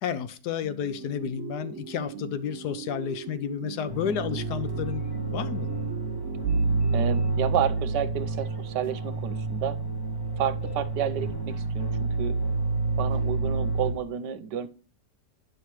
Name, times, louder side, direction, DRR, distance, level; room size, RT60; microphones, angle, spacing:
voice 1, 0.0-5.0 5.3-5.7, left 8 dB, 70° left, 1.2 m, -31 dB
sound 1, 0.6-7.8, right 7 dB, 60° right, 0.9 m, -41 dB
sound 2, 3.9-13.9, right 3 dB, 20° left, 0.8 m, -28 dB
voice 2, 6.9-9.8 10.4-12.4 13.0-14.7, right 9 dB, 85° right, 1.3 m, -30 dB
9.9 x 5.6 x 3.0 m
omnidirectional pair, 1.8 m